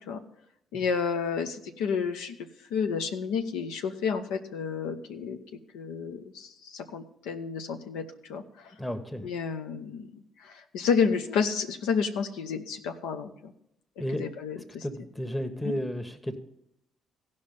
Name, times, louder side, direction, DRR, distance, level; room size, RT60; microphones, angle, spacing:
voice 1, 0.7-2.4 2.7-5.4 5.7-8.7 9.2-13.5 14.0-14.8 15.6-15.7, left 6 dB, 90° left, 6 dB, 0.7 m, -31 dB
voice 2, 8.8-9.3 14.0-14.2 14.8-16.4, equal, 10° left, 8 dB, 1.2 m, -33 dB
15.0 x 5.4 x 5.3 m, 0.77 s
supercardioid pair, 70°, 0 cm